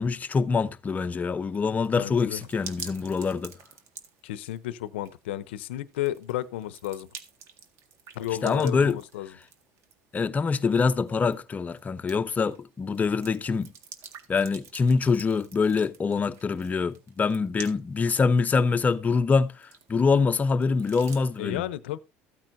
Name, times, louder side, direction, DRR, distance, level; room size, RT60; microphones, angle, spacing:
voice 1, 0.0-3.5 8.4-9.0 10.1-13.7 14.3-21.6, left 4 dB, 25° left, 0.9 m, -25 dB
sound 1, 1.5-21.4, right 7 dB, 55° right, 1.8 m, -49 dB
voice 2, 2.0-2.4 4.2-7.1 8.1-9.4 21.4-22.0, left 14 dB, 90° left, 0.8 m, -32 dB
14.5 x 8.9 x 2.7 m
supercardioid pair, 95°, 6 cm